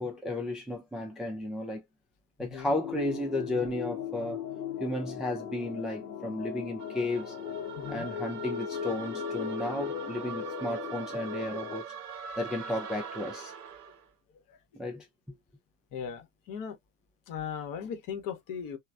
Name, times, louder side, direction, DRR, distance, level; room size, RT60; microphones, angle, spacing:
voice 1, 0.0-1.8 2.4-4.4 4.8-7.3 7.9-11.9 12.4-13.5 14.8-15.4, left 1 dB, ahead, 0.4 m, -33 dB
voice 2, 2.4-2.7 7.8-8.1 14.5-14.6 15.9-16.8 17.3-18.8, left 7 dB, 45° left, 1.0 m, -38 dB
sound 1, 2.8-11.8, left 8 dB, 80° left, 0.6 m, -38 dB
sound 2, 6.8-14.0, right 7 dB, 80° right, 0.6 m, -42 dB
3.1 x 2.1 x 2.3 m
figure-of-eight pair, 65°, 46 cm